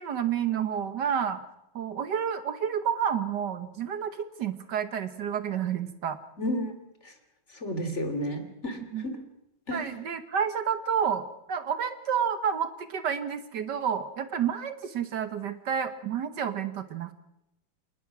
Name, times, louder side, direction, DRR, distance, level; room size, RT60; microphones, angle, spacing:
voice 1, 0.0-1.4 1.7-6.2 8.9-9.0 9.7-17.1, right 8 dB, 65° right, 11 dB, 1.7 m, -30 dB
voice 2, 6.4-6.7 7.0-7.1 7.5-9.2 9.7-10.0, equal, 35° left, 7 dB, 3.2 m, -32 dB
28.5 x 19.0 x 6.1 m, 0.85 s
omnidirectional pair, 2.1 m